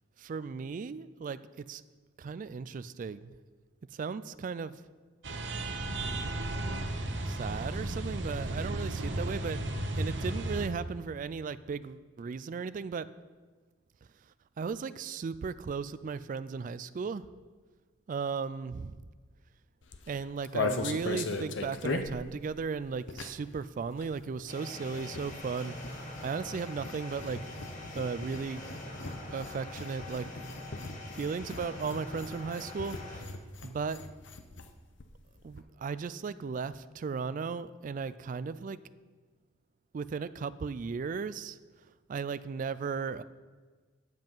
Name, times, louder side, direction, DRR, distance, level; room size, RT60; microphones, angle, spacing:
voice 1, 0.2-1.8 2.2-3.3 3.9-4.8 7.2-9.6 9.9-13.1 14.6-17.2 18.1-19.0 20.1-25.8 26.2-27.5 27.9-28.6 29.3-30.3 31.1-33.3 33.6-34.0 35.4-38.8 39.9-41.6 42.1-43.2, right 5 dB, 45° right, 16 dB, 0.3 m, -36 dB
sound 1, 5.2-10.7, right 1 dB, 65° right, 0.9 m, -34 dB
sound 2, 19.8-23.5 23.8-34.7 35.0-35.1 35.3-35.6, left 3 dB, 70° left, 0.7 m, -39 dB
sound 3, 24.5-33.2, left 1 dB, 40° left, 1.8 m, -44 dB
9.1 x 7.8 x 5.5 m, 1.4 s
head